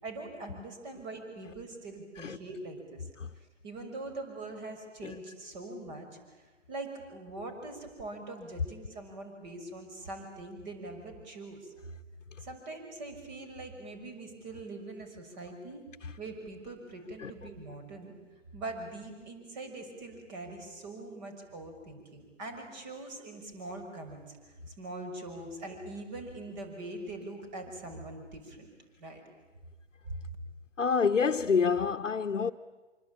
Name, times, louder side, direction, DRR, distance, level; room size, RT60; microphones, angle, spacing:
voice 1, 0.0-3.1 3.6-6.1 6.7-11.6 12.4-15.8 16.2-18.1 18.5-24.4 24.8-28.7 29.0-29.2, right 2 dB, 35° right, 6.4 m, -42 dB
voice 2, 30.8-32.5, left 5 dB, 85° left, 1.0 m, -27 dB
26.0 x 24.5 x 8.8 m
figure-of-eight pair, 135°, 37 cm